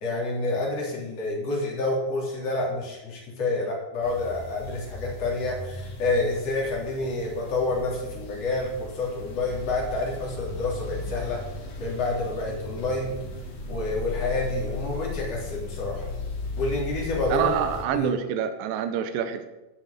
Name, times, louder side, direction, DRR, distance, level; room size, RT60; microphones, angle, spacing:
voice 1, 0.0-11.4 11.8-13.2 13.7-16.0 16.6-17.5 17.9-18.1, left 2 dB, 45° left, -3 dB, 4.3 m, -28 dB
sound 1, 4.0-17.9, left 3 dB, 60° left, 3.9 m, -36 dB
voice 2, 17.3-19.5, right 8 dB, 75° right, 9 dB, 2.5 m, -27 dB
11.5 x 7.2 x 8.1 m, 1.0 s
omnidirectional pair, 4.3 m